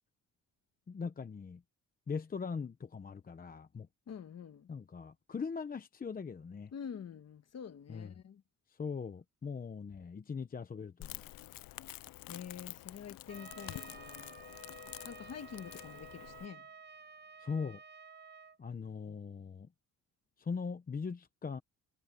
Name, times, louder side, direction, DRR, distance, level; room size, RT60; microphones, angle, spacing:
voice 1, 0.9-1.6 2.1-3.9 4.7-6.7 7.9-8.1 8.8-11.2 17.4-17.8 18.6-19.7 20.4-21.6, left 5 dB, 25° left, 0.8 m, -40 dB
voice 2, 4.1-4.7 6.7-8.4 12.3-14.4 15.0-16.7, left 7 dB, 45° left, 1.6 m, -47 dB
Crackle, 11.0-16.5, left 16 dB, 75° left, 0.6 m, -48 dB
Trumpet, 13.3-18.6, right 5 dB, 30° right, 0.7 m, -53 dB
cardioid pair, 135°, 35 cm